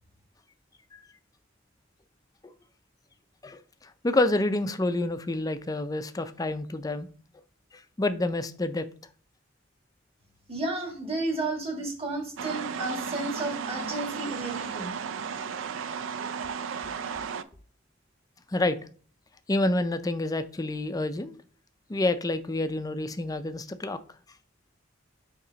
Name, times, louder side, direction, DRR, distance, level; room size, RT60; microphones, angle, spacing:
voice 1, 3.4-7.1 7.7-8.9 18.5-18.8 19.5-21.3 21.9-24.0, left 2 dB, 20° left, 0.4 m, -28 dB
voice 2, 10.5-14.9, right 2 dB, 30° right, 1.6 m, -32 dB
sound 1, 12.4-17.4, right 6 dB, 75° right, 0.4 m, -34 dB
6.7 x 2.9 x 5.0 m
head